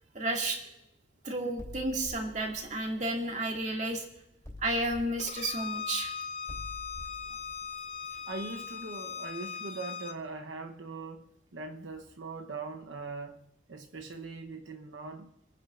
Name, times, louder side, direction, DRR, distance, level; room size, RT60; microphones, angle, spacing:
voice 1, 0.1-0.6 1.2-4.1 4.6-6.1, right 1 dB, 40° right, 2.2 m, -32 dB
sound 1, 1.6-3.9 4.4-9.1, left 1 dB, 15° left, 3.2 m, -48 dB
Bowed string instrument, 5.2-10.2, left 6 dB, 35° left, 0.8 m, -39 dB
voice 2, 8.3-13.4 13.7-15.3, right 3 dB, 85° right, 1.0 m, -41 dB
29.5 x 10.5 x 2.5 m
head